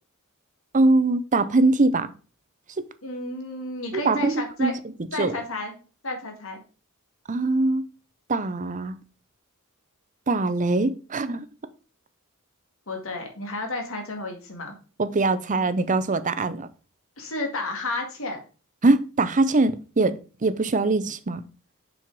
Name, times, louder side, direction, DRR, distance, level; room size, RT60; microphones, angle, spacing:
voice 1, 0.7-2.1 2.8-2.9 3.9-4.7 5.2-5.3 7.3-7.8 8.3-9.0 10.3-11.4 15.0-16.7 18.8-21.4, right 2 dB, 35° right, 0.7 m, -22 dB
voice 2, 3.0-4.7 5.1-5.7 6.0-6.6 12.9-14.7 17.2-18.4, left 2 dB, 65° left, 2.2 m, -31 dB
7.4 x 5.7 x 4.7 m
head